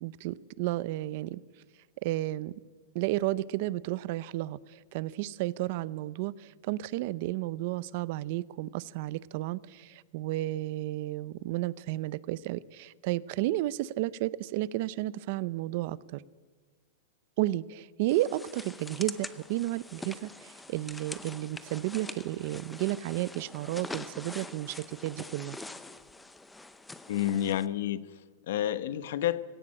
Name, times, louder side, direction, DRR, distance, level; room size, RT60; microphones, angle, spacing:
voice 1, 0.0-1.4 2.0-2.5 2.9-16.2 17.4-25.6, right 16 dB, 45° right, 20 dB, 0.6 m, -32 dB
sound 1, 18.1-27.7, left 2 dB, 5° left, 0.6 m, -44 dB
voice 2, 27.1-29.4, left 11 dB, 60° left, 15 dB, 1.0 m, -30 dB
19.5 x 17.0 x 8.8 m, 1.4 s
supercardioid pair, 170°, 0 cm